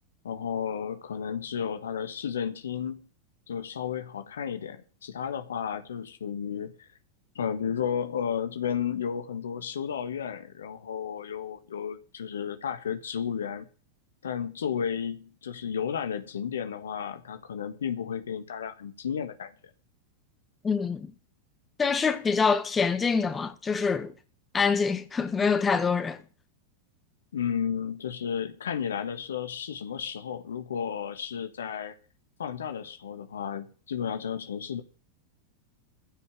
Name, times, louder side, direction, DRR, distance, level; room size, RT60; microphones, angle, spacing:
voice 1, 0.2-3.0 3.5-6.9 7.3-13.6 14.2-19.5 27.3-31.9 32.4-34.8, left 7 dB, 75° left, 1.5 m, -33 dB
voice 2, 20.6-21.1 21.8-24.1 24.5-26.2, left 5 dB, 20° left, 1.6 m, -25 dB
15.0 x 5.6 x 9.1 m
figure-of-eight pair, 95°, 0 cm